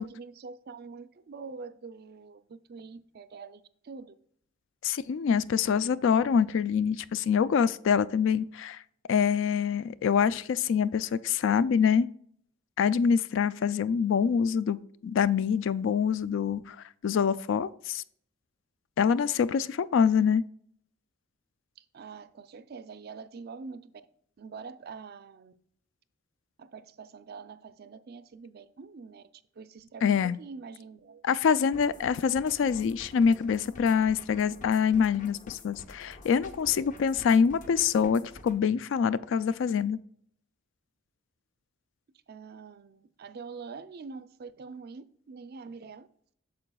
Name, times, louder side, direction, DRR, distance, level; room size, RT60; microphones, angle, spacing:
voice 1, 0.0-4.1 21.8-24.0 24.4-25.5 26.6-29.2 29.6-31.2 42.3-46.1, right 4 dB, 50° right, 0.4 m, -45 dB
voice 2, 4.8-8.8 9.1-12.1 12.8-14.8 15.0-16.8 17.0-18.0 19.0-20.4 30.0-30.4 31.2-40.0, left 6 dB, 65° left, 0.3 m, -25 dB
sound 1, 31.7-38.6, left 2 dB, 40° left, 0.8 m, -49 dB
8.7 x 6.7 x 2.3 m
head